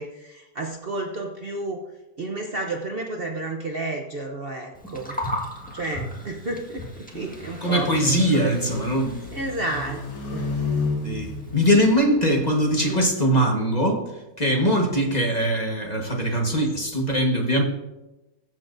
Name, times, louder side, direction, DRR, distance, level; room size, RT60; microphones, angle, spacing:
voice 1, 0.0-1.8 2.2-5.2 5.7-7.9 8.3-8.8 9.3-10.5 12.8-13.0, right 2 dB, 45° right, 2 dB, 0.9 m, -31 dB
Gurgling, 4.7-12.0, equal, 5° left, 1.5 m, -38 dB
sound 1, 7.1-12.6, left 3 dB, 70° left, 2.4 m, -32 dB
voice 2, 7.6-9.2 11.0-17.6, equal, 30° left, 0 dB, 1.4 m, -22 dB
21.0 x 7.5 x 2.6 m, 1.0 s
omnidirectional pair, 1.6 m